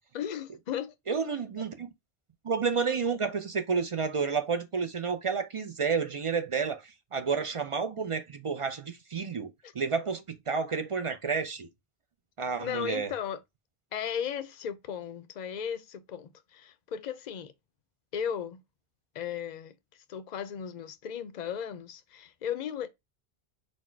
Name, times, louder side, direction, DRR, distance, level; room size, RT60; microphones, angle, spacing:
voice 1, 0.1-0.9 9.6-9.7 12.6-13.4 13.9-17.5 18.1-18.6 19.1-22.9, left 8 dB, 50° left, 0.6 m, -36 dB
voice 2, 1.1-1.9 2.4-6.8 7.1-9.5 9.7-11.7 12.4-13.1, right 5 dB, 50° right, 0.4 m, -30 dB
4.3 x 2.1 x 4.4 m
omnidirectional pair, 1.1 m